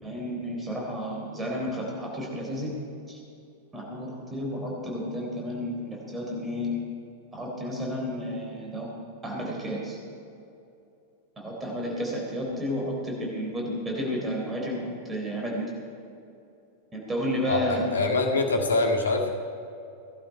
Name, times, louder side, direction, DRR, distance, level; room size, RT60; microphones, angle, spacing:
voice 1, 0.0-2.7 3.1-3.2 3.7-6.8 7.3-8.9 9.2-10.0 11.4-15.7 16.9-17.9, equal, 15° right, -2 dB, 3.8 m, -32 dB
voice 2, 17.5-19.3, left 3 dB, 70° left, 1 dB, 1.8 m, -24 dB
18.0 x 12.0 x 4.7 m, 2.7 s
figure-of-eight pair, 90°, 0 cm